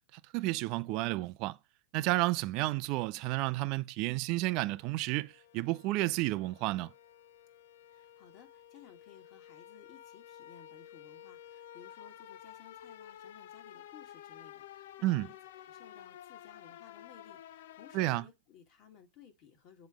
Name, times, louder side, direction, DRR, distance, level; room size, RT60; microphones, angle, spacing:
voice 1, 0.3-1.6 1.9-6.9 15.0-15.3 17.9-18.3, right 19 dB, 40° right, 0.4 m, -31 dB
sound 1, 4.7-18.2, left 11 dB, 60° left, 0.5 m, -52 dB
voice 2, 7.9-15.4 15.7-19.9, left 8 dB, 35° left, 1.8 m, -58 dB
7.3 x 3.1 x 5.0 m
hypercardioid pair, 140°, 0 cm